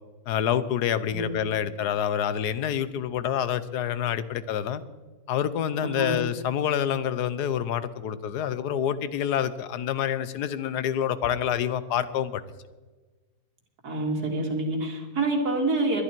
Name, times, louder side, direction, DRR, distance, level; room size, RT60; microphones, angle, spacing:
voice 1, 0.3-4.8 5.3-12.4, left 9 dB, 80° left, 14 dB, 1.3 m, -27 dB
voice 2, 5.8-6.2 13.8-16.0, right 2 dB, 65° right, 1 dB, 2.8 m, -27 dB
21.0 x 11.5 x 4.5 m, 1.3 s
omnidirectional pair, 1.7 m